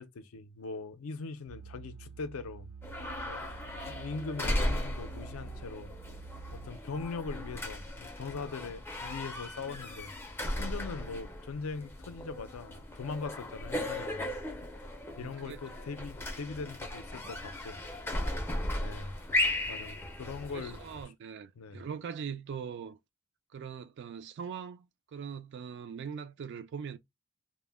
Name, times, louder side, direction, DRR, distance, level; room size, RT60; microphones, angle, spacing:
voice 1, 0.0-2.7 3.3-3.5 3.9-5.9 6.5-14.3 15.2-17.8 18.3-19.3 19.7-20.8 21.6-21.9, left 4 dB, 75° left, 0.5 m, -41 dB
sound 1, 1.5-6.7, right 6 dB, 75° right, 0.7 m, -48 dB
sound 2, 2.8-21.0, left 1 dB, 10° left, 0.4 m, -36 dB
voice 2, 15.2-15.6 20.5-23.0 23.5-24.9 25.1-27.0, right 7 dB, 55° right, 0.3 m, -41 dB
2.1 x 2.1 x 3.3 m
head